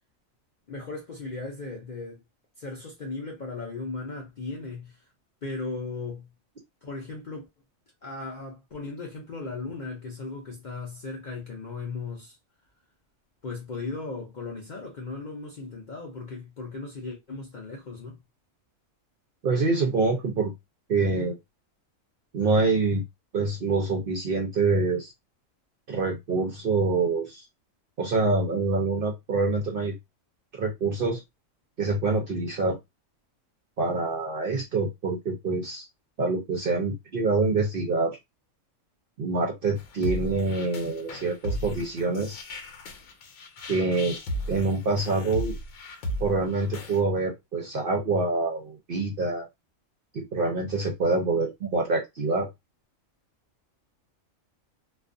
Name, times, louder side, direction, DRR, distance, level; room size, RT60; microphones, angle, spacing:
voice 1, 0.7-2.2 2.6-5.0 5.4-6.3 6.8-7.5 8.0-12.4 13.4-18.2, left 3 dB, 50° left, 0.5 m, -37 dB
voice 2, 19.4-20.5 20.9-21.4 22.3-23.0 23.3-25.1 25.9-27.4 28.0-29.9 30.5-31.2 31.8-32.8 33.8-35.9 36.2-38.2 39.2-42.3 43.7-44.2 44.5-45.5 46.2-49.5 50.1-52.5, right 3 dB, 60° right, 0.6 m, -26 dB
sound 1, 39.8-47.0, equal, 80° left, 1.1 m, -35 dB
2.4 x 2.3 x 2.4 m
omnidirectional pair, 1.4 m